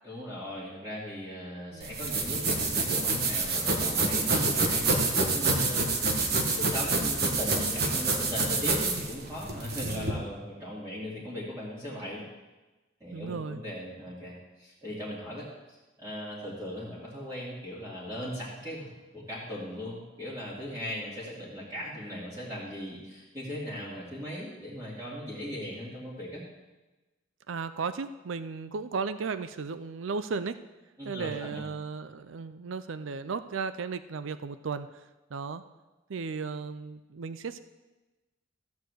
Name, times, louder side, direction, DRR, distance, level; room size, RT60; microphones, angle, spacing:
voice 1, 0.0-12.2 13.0-26.4 31.0-31.7, equal, 15° right, -9 dB, 2.5 m, -38 dB
sound 1, 1.8-10.1, right 3 dB, 55° right, 1.4 m, -27 dB
voice 2, 9.8-10.2 13.1-13.6 27.5-30.6 31.1-34.9 35.3-35.6 36.1-37.6, right 5 dB, 85° right, 12 dB, 0.5 m, -35 dB
14.0 x 4.7 x 7.9 m, 1.1 s
head